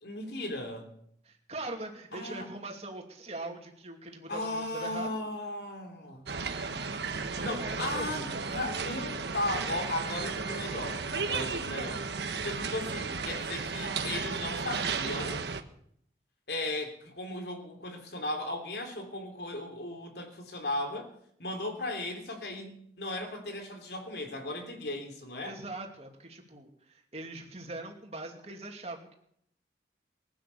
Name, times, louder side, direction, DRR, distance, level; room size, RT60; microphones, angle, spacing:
voice 1, 0.0-0.9 2.1-2.5 4.3-6.2 7.4-12.1 12.3-15.4 16.5-21.1 21.4-25.5, left 1 dB, 70° left, 4 dB, 3.2 m, -36 dB
voice 2, 1.2-5.2 7.3-8.5 25.4-29.1, right 2 dB, 35° right, 2 dB, 2.6 m, -42 dB
sound 1, 6.3-15.6, right 5 dB, 80° right, 1.2 m, -34 dB
20.5 x 9.9 x 6.9 m, 0.69 s
head